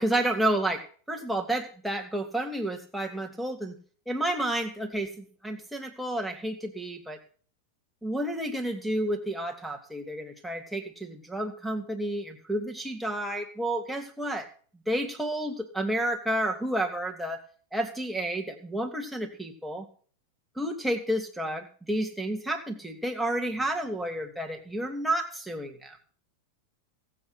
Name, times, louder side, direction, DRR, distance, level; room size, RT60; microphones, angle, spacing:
voice 1, 0.0-3.8 4.1-7.2 8.0-14.5 14.9-17.4 17.7-19.9 20.6-26.0, right 1 dB, ahead, 2 dB, 2.8 m, -30 dB
18.5 x 8.4 x 6.1 m, 0.43 s
figure-of-eight pair, 90°, 0 cm